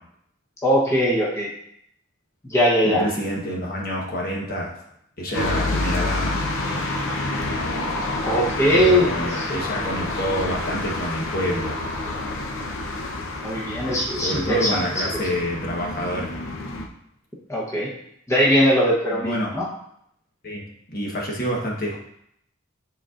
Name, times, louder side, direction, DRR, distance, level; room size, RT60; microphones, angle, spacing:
voice 1, 0.6-1.5 2.4-3.0 8.2-9.1 9.5-9.6 13.4-14.7 17.5-17.9 18.3-19.6, equal, 15° left, -5 dB, 0.9 m, -20 dB
voice 2, 2.8-4.8 5.2-6.4 8.7-11.8 14.2-16.4 19.1-19.5 20.4-20.6 20.9-22.0, equal, 45° left, -2 dB, 1.2 m, -27 dB
sound 1, 5.3-16.9, left 2 dB, 75° left, 0.8 m, -28 dB
9.0 x 4.2 x 2.5 m, 0.73 s
head